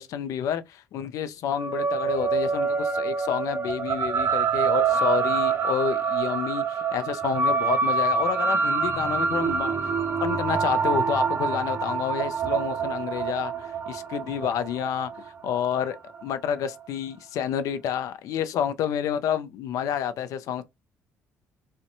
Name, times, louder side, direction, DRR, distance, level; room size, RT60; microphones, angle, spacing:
voice 1, 0.0-9.7 10.2-15.1 15.4-20.6, left 9 dB, 65° left, 0.4 m, -29 dB
sound 1, 1.5-16.2, right 5 dB, 40° right, 0.4 m, -26 dB
2.5 x 2.1 x 2.6 m
hypercardioid pair, 60°, 6 cm